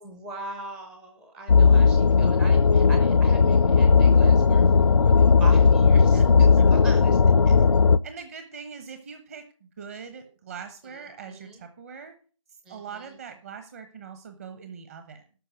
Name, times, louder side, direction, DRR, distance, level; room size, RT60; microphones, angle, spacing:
voice 1, 0.0-7.2 7.5-7.6 10.8-11.6 12.6-13.2, right 2 dB, 5° right, 4 dB, 0.6 m, -42 dB
sound 1, 1.5-8.0, left 5 dB, 60° left, 0.5 m, -17 dB
voice 2, 8.0-12.1 12.7-15.2, right 6 dB, 25° right, 7 dB, 1.0 m, -41 dB
13.0 x 5.5 x 8.0 m, 0.40 s
figure-of-eight pair, 160°, 17 cm